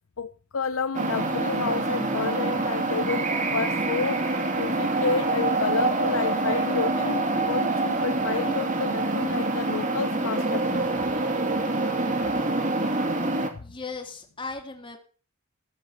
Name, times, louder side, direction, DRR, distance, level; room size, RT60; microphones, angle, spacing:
voice 1, 0.2-4.3 4.6-10.9, left 5 dB, 70° left, 0.7 m, -30 dB
sound 1, 0.9-13.5, right 2 dB, 35° right, 2.7 m, -26 dB
voice 2, 13.6-15.0, left 4 dB, 25° left, 3.3 m, -37 dB
17.5 x 8.0 x 7.2 m
head